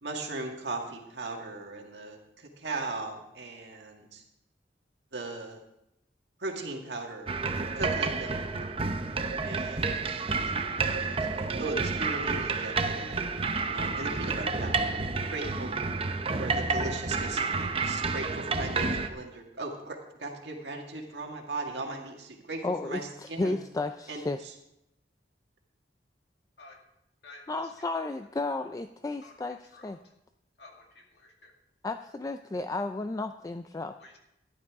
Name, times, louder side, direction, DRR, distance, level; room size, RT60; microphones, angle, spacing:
voice 1, 0.0-4.2 5.1-5.6 6.4-8.4 9.4-10.4 11.1-13.2 13.7-14.8 15.3-15.8 16.4-23.6 24.1-24.2, right 2 dB, 75° right, 2 dB, 1.8 m, -38 dB
sound 1, 7.3-19.1, right 4 dB, 35° right, 0.7 m, -30 dB
voice 2, 22.6-24.4 27.5-30.0 31.8-33.9, left 2 dB, 20° left, 8 dB, 0.3 m, -33 dB
voice 3, 27.2-27.6 29.2-29.3 29.7-29.9 30.6-31.5 34.0-34.2, left 3 dB, 70° left, 2 dB, 2.0 m, -51 dB
13.5 x 11.0 x 3.6 m, 0.85 s
head